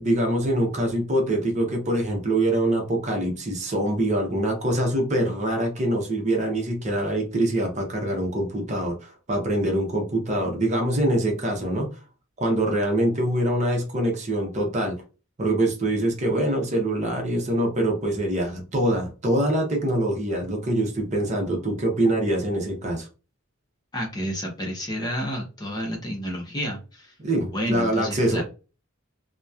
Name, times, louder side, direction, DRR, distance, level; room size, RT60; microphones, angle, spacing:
voice 1, 0.0-11.9 12.4-14.9 15.4-23.1 27.2-28.4, right 1 dB, 35° right, 2 dB, 0.7 m, -24 dB
voice 2, 23.9-27.1 27.5-28.4, equal, 20° left, 0 dB, 0.6 m, -30 dB
2.8 x 2.1 x 2.3 m, 0.34 s
head